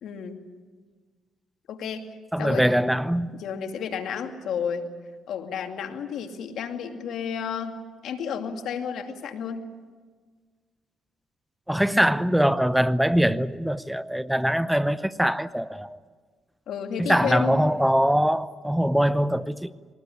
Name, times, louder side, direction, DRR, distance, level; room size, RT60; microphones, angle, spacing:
voice 1, 0.0-0.5 1.7-2.1 2.4-2.7 3.3-4.9 5.3-7.8 8.0-9.7 16.7-17.6, left 7 dB, 75° left, 2.4 m, -31 dB
voice 2, 2.3-3.3 11.7-16.0 17.0-19.7, equal, 5° right, 0.8 m, -22 dB
22.0 x 19.0 x 10.0 m
cardioid pair, 90°, 0 cm